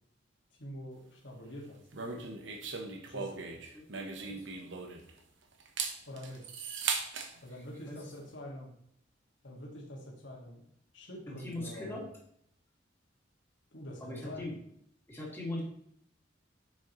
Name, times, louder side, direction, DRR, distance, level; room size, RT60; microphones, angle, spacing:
voice 1, 0.6-1.8 3.0-3.4 6.1-6.5 7.4-8.7 9.4-10.6 10.9-12.0 13.7-14.5, left 1 dB, 70° left, -2 dB, 1.9 m, -45 dB
sound 1, 1.9-5.2 5.6-7.3, right 5 dB, 70° right, 1.0 m, -38 dB
voice 2, 3.5-3.8 4.2-4.6 7.9-8.0 11.3-12.1 14.0-14.6 15.1-15.6, left 1 dB, 10° left, -4 dB, 2.2 m, -41 dB
8.7 x 6.3 x 3.1 m, 0.71 s
head